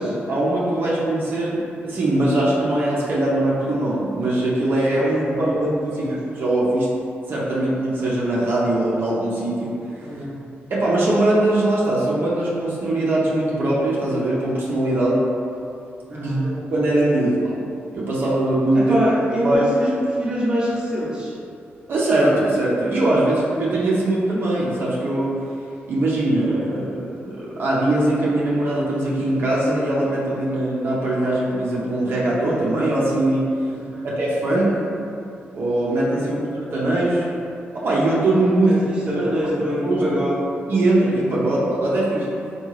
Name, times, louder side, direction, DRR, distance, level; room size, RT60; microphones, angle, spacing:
voice 1, 0.0-6.9 7.3-9.7 10.7-15.2 16.2-16.3 16.7-17.5 17.9-19.0 19.4-19.6 21.9-25.4 25.9-33.4 34.2-34.8 35.5-36.4 36.7-37.3 37.7-38.8 39.1-39.5 39.8-40.0 40.7-42.3, right 1 dB, 55° right, -6 dB, 0.6 m, -21 dB
voice 2, 5.0-6.2 10.0-10.4 16.1-16.7 18.7-21.3 33.7-34.1 36.1-36.4 38.7-40.5 41.4-41.5, equal, 20° right, -7 dB, 0.7 m, -25 dB
3.5 x 2.3 x 3.1 m, 2.6 s
wide cardioid pair, 140°, 4 cm